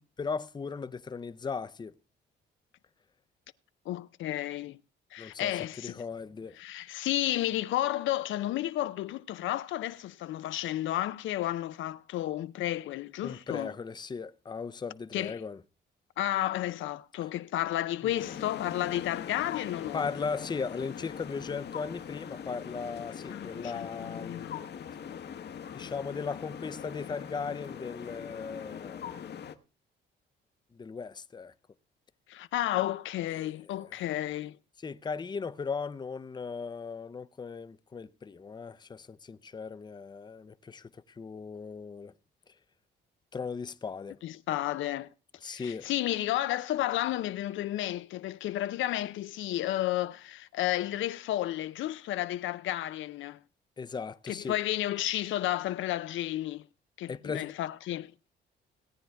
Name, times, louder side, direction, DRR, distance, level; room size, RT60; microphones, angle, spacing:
voice 1, 0.2-1.9 5.2-6.6 13.2-15.6 18.0-18.2 19.9-24.5 25.7-29.1 30.7-31.5 33.3-34.0 34.8-42.1 42.5-42.6 43.3-44.2 45.4-45.9 53.8-54.6 57.1-57.5, left 5 dB, 20° left, 0.5 m, -37 dB
voice 2, 3.9-4.8 5.1-6.0 6.6-13.7 15.1-15.4 16.2-20.0 23.3-24.6 25.1-25.2 32.3-34.6 44.2-45.1 45.5-53.4 54.3-56.6 57.0-58.1, left 14 dB, 80° left, 0.5 m, -32 dB
sound 1, 18.2-29.6, left 8 dB, 55° left, 1.0 m, -42 dB
17.5 x 9.0 x 3.4 m
cardioid pair, 90°, 20 cm